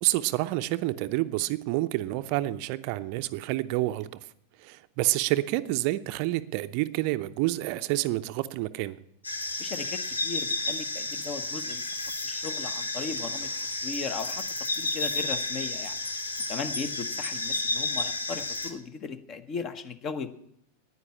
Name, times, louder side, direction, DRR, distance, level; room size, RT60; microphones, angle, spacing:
voice 1, 0.0-4.1 4.6-8.9, right 17 dB, 45° right, 12 dB, 0.6 m, -28 dB
sound 1, 9.2-18.7, left 2 dB, 75° left, 1.3 m, -32 dB
voice 2, 9.6-11.8 12.2-13.5 13.8-14.4 14.8-16.0 16.5-20.3, left 5 dB, 30° left, 12 dB, 1.1 m, -37 dB
9.8 x 9.7 x 8.7 m, 0.73 s
figure-of-eight pair, 90°, 0 cm